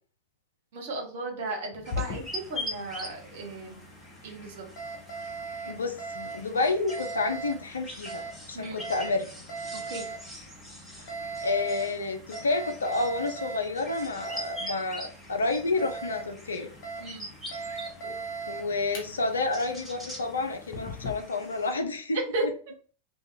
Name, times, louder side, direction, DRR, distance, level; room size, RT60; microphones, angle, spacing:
voice 1, 0.7-3.9 4.2-4.7 8.5-8.8 9.7-10.1 17.0-17.3 22.1-22.5, right 2 dB, 55° right, 2 dB, 0.9 m, -35 dB
Alarm, 1.7-21.1, right 2 dB, 45° left, 0.8 m, -40 dB
sound 1, 1.8-21.7, left 1 dB, 5° left, 0.9 m, -44 dB
voice 2, 5.7-9.3 11.4-16.7 18.5-22.5, left 3 dB, 70° left, 5 dB, 0.5 m, -30 dB
2.4 x 2.3 x 2.8 m, 0.39 s
figure-of-eight pair, 90°, 0 cm